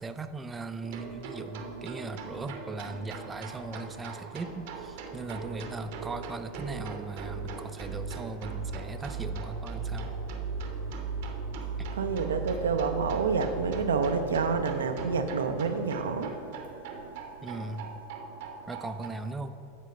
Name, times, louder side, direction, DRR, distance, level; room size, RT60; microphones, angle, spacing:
voice 1, 0.0-10.1 17.4-17.9 18.7-19.5, right 3 dB, 20° right, 9 dB, 0.4 m, -38 dB
sound 1, 0.8-19.1, right 4 dB, 65° right, 0.8 m, -38 dB
voice 2, 11.9-16.3, right 5 dB, 80° right, 7 dB, 0.5 m, -28 dB
8.5 x 4.4 x 5.1 m, 2.4 s
hypercardioid pair, 85°, 0 cm